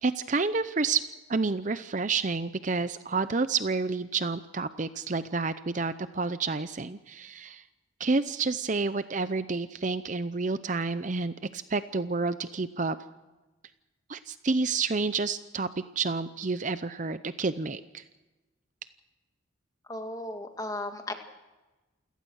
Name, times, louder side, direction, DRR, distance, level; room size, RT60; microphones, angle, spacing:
voice 1, 0.0-1.0 1.3-7.6 8.0-13.0 14.1-15.7 16.0-18.0, right 4 dB, 40° right, 12 dB, 0.6 m, -29 dB
voice 2, 19.9-21.1, left 1 dB, 20° left, 5 dB, 2.1 m, -35 dB
28.5 x 17.5 x 6.4 m, 1.1 s
head